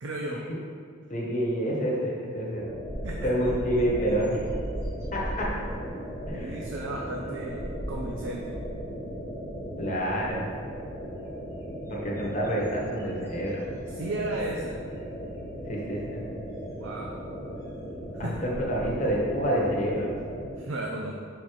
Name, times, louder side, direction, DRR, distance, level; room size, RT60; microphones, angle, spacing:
voice 1, 0.0-0.4 3.0-3.2 6.3-8.4 14.0-14.8 16.8-17.1 18.2-18.3 20.6-21.2, right 1 dB, 60° right, -1 dB, 0.6 m, -34 dB
voice 2, 1.1-2.7 3.2-4.4 5.1-5.5 6.3-6.6 9.8-10.4 11.9-13.6 15.7-16.2 18.2-20.1, equal, 35° left, -4 dB, 1.2 m, -28 dB
sound 1, 2.6-20.5, equal, 15° left, 1.3 m, -38 dB
sound 2, 2.9-8.9 9.3-9.7 10.0-11.0 11.6-13.9 14.3-14.5 15.6-15.7 17.8-17.9 18.3-19.2, equal, 15° right, 1.7 m, -38 dB
5.4 x 4.6 x 5.0 m, 2.2 s
head